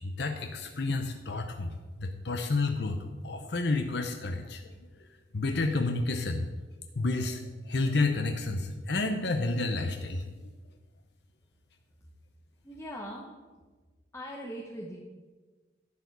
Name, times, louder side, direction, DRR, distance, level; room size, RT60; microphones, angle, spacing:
voice 1, 0.0-1.7 2.0-4.7 5.3-6.5 7.0-7.4 7.7-10.3, left 3 dB, 65° left, 5 dB, 0.7 m, -30 dB
voice 2, 12.6-13.4 14.1-15.0, equal, 15° left, -3 dB, 1.3 m, -40 dB
11.5 x 4.9 x 8.1 m, 1.3 s
head